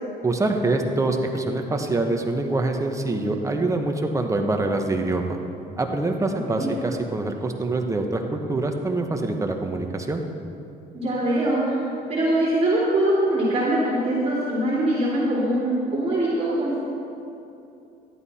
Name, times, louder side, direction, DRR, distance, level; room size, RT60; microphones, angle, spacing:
voice 1, 0.2-5.4 5.8-10.2, right 2 dB, 20° right, 4 dB, 1.1 m, -25 dB
voice 2, 6.3-6.7 10.9-11.8 12.1-16.8, right 1 dB, 35° right, -6 dB, 3.1 m, -23 dB
13.0 x 11.0 x 4.3 m, 2.7 s
cardioid pair, 110°, 17 cm